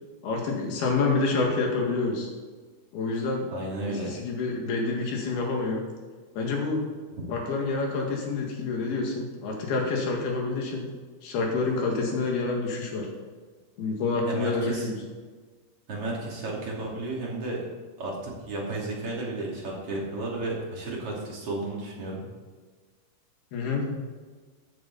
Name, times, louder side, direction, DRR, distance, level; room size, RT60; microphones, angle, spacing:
voice 1, 0.2-2.3 2.9-3.5 3.8-5.8 6.4-6.8 7.3-10.8 11.2-13.1 13.8-15.0 23.5-23.8, left 3 dB, 70° left, 0 dB, 3.9 m, -28 dB
voice 2, 3.5-4.1 14.3-14.9 15.9-17.7 18.0-22.3, right 2 dB, 40° right, -4 dB, 3.5 m, -33 dB
13.5 x 9.6 x 4.2 m, 1.4 s
omnidirectional pair, 4.7 m